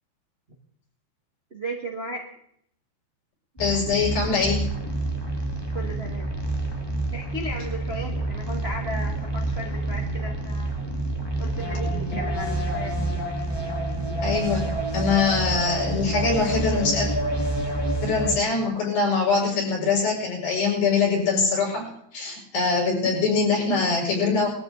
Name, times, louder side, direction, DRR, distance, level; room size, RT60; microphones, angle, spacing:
voice 1, 1.5-2.3 5.7-6.3 7.1-10.7 11.4-12.9, right 1 dB, 30° right, 0 dB, 1.1 m, -35 dB
voice 2, 3.6-4.7 14.2-14.7 14.9-17.1 18.0-24.5, left 4 dB, 65° left, -2 dB, 8.6 m, -23 dB
sound 1, 3.6-18.4, right 2 dB, 15° left, 0.7 m, -28 dB
23.0 x 14.0 x 4.0 m, 0.69 s
omnidirectional pair, 4.6 m